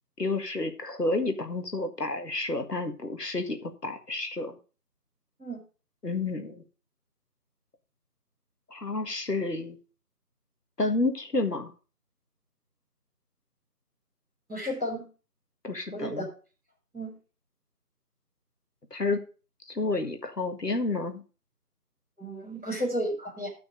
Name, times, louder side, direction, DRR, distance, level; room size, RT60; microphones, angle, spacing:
voice 1, 0.2-4.6 6.0-6.6 8.7-9.8 10.8-11.7 15.6-16.3 18.9-19.2 19.7-21.2, left 2 dB, 85° left, 7 dB, 1.8 m, -30 dB
voice 2, 14.5-15.0 15.9-16.3 16.9-17.1 22.2-23.5, equal, ahead, -35 dB, 2.8 m, -32 dB
11.0 x 6.0 x 5.0 m, 0.35 s
figure-of-eight pair, 170°, 47 cm